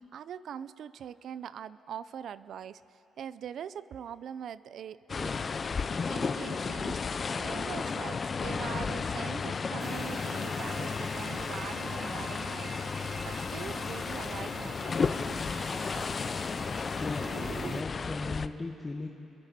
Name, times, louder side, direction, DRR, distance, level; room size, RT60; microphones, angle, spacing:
voice 1, 0.0-5.4 6.1-7.0 7.3-12.8 13.2-15.4, right 8 dB, 65° right, 16 dB, 0.5 m, -42 dB
sound 1, 5.1-18.5, left 5 dB, 40° left, 0.6 m, -33 dB
sound 2, 9.8-17.8, right 5 dB, 50° right, 0.9 m, -45 dB
voice 2, 16.9-19.1, left 3 dB, 25° left, 0 dB, 1.3 m, -37 dB
29.5 x 22.5 x 4.3 m, 2.9 s
cardioid pair, 100°, 0 cm